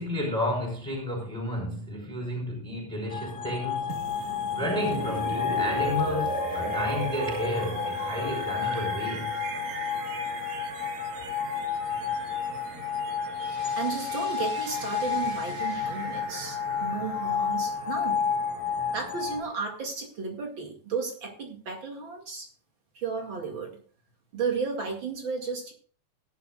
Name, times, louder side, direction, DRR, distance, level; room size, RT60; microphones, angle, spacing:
voice 1, 0.0-3.9 4.5-9.4, equal, ahead, 4.5 m, -31 dB
sound 1, 3.1-19.4, left 7 dB, 35° left, 3.8 m, -31 dB
sound 2, 3.9-19.8, right 6 dB, 75° right, 2.9 m, -39 dB
voice 2, 13.8-18.2 18.9-22.5 22.9-23.8 24.3-25.7, right 5 dB, 40° right, 2.7 m, -33 dB
18.0 x 11.0 x 2.5 m
omnidirectional pair, 3.5 m